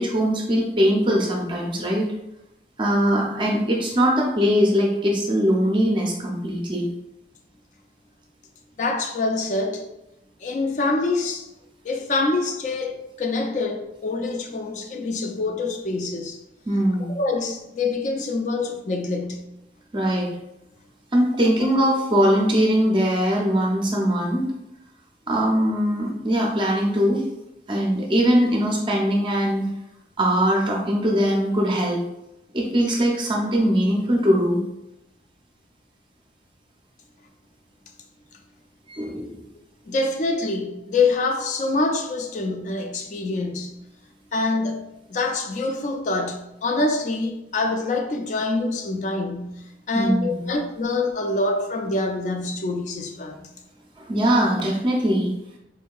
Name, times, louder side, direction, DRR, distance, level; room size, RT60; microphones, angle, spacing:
voice 1, 0.0-2.1 2.8-6.9 16.7-17.2 19.9-20.3 21.1-24.5 25.3-27.2 27.7-29.6 30.2-32.0 32.5-34.6 38.9-39.4 49.9-50.6 54.0-55.3, equal, 25° right, 0.5 m, -21 dB
voice 2, 8.8-9.9 10.4-11.5 11.8-16.4 17.1-19.5 39.9-43.7 44.3-53.5, left 3 dB, 40° left, 0.4 m, -25 dB
4.4 x 2.7 x 2.3 m
head